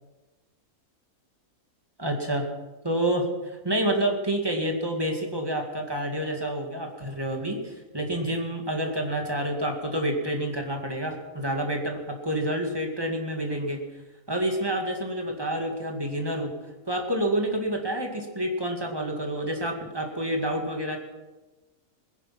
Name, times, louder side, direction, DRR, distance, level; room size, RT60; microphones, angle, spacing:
voice 1, 2.0-2.5 2.8-13.8 14.3-16.5 16.9-21.0, right 1 dB, 15° right, 2 dB, 2.2 m, -28 dB
20.5 x 10.0 x 5.9 m, 1.2 s
omnidirectional pair, 1.5 m